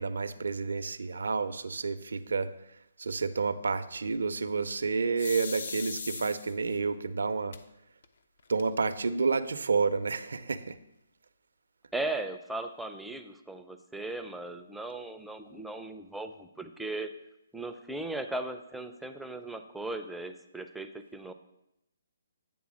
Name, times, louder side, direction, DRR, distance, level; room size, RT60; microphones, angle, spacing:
voice 1, 0.0-2.5 3.0-7.6 8.5-10.8, right 4 dB, 80° right, 12 dB, 0.5 m, -30 dB
sound 1, 5.2-6.7 7.5-7.6 8.0-8.1 8.4-9.0, left 5 dB, 65° left, 0.5 m, -39 dB
voice 2, 11.9-17.1 17.5-21.3, right 2 dB, ahead, 7 dB, 0.4 m, -37 dB
8.6 x 3.4 x 6.1 m, 0.86 s
hypercardioid pair, 150°, 0 cm